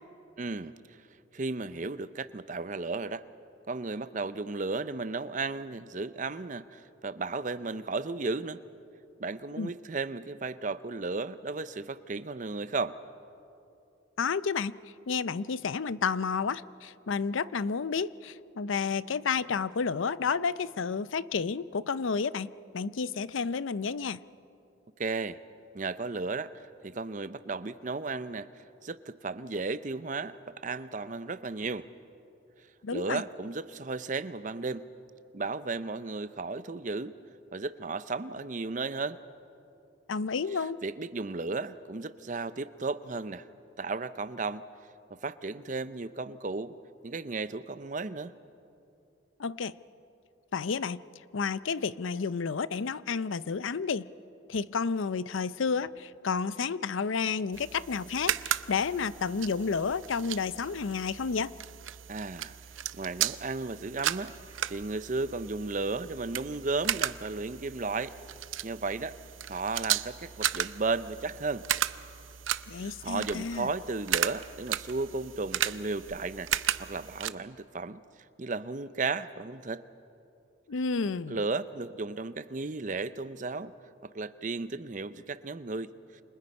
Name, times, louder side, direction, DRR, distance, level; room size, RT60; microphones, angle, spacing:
voice 1, 0.4-0.7 1.3-3.2 3.7-8.6 9.2-13.0 25.0-25.4 25.7-31.9 32.9-34.8 35.3-37.1 37.5-39.2 40.8-43.5 43.8-44.6 45.1-46.7 47.0-48.3 62.1-62.6 63.0-64.3 64.7-68.1 68.6-69.2 69.5-71.7 72.7-78.0 78.4-79.8 81.3-83.7 84.0-85.9, right 3 dB, 40° right, 14 dB, 0.6 m, -34 dB
voice 2, 14.2-14.8 15.1-24.2 32.8-33.2 40.1-40.8 49.4-49.7 50.5-51.0 51.3-54.1 54.5-61.5 72.7-73.7 80.7-81.4, left 5 dB, 80° left, 17 dB, 0.5 m, -31 dB
sound 1, 57.5-77.3, right 11 dB, 80° right, 0.6 m, -35 dB
28.5 x 26.5 x 5.4 m, 2.7 s
head